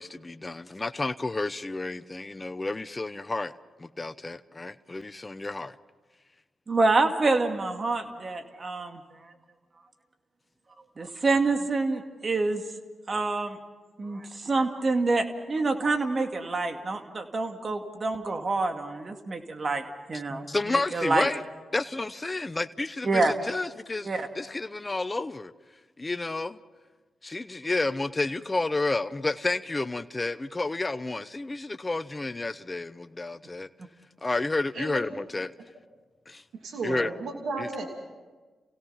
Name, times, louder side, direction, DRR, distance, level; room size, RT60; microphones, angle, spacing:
voice 1, 0.0-3.5 3.8-5.8 20.5-21.4 21.7-24.1 24.3-25.5 26.0-26.6 27.2-33.7 34.2-35.5 36.3-36.4 36.8-37.1 37.6-37.7, left 2 dB, 30° left, 0.8 m, -30 dB
voice 2, 6.7-9.0 11.0-12.6 13.1-13.6 14.0-19.8 20.1-21.3 23.0-23.3 24.0-24.3, right 3 dB, 45° right, 2.3 m, -27 dB
voice 3, 36.6-37.9, right 3 dB, 75° right, 2.7 m, -33 dB
29.0 x 17.0 x 5.8 m
supercardioid pair, 45°, 0 cm